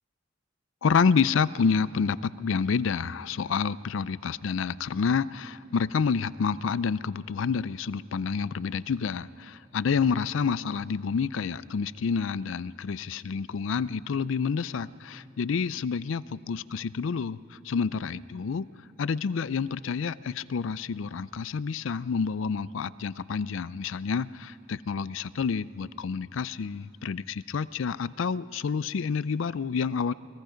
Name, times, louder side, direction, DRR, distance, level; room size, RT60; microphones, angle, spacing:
voice 1, 0.8-17.4 17.6-18.7 19.0-30.1, left 5 dB, 70° left, 18 dB, 0.4 m, -28 dB
29.0 x 20.5 x 5.1 m, 2.5 s
head